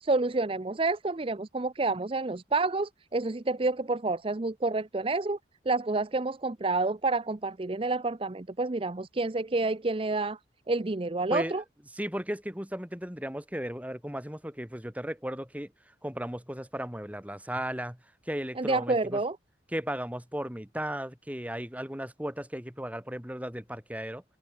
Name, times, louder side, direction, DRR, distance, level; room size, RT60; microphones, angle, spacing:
voice 1, 0.0-5.4 5.7-10.4 10.7-11.6 18.6-19.4, right 3 dB, 30° right, 0.6 m, -29 dB
voice 2, 11.9-18.0 18.2-19.2 19.7-24.2, equal, 10° right, 3.3 m, -35 dB
open air
head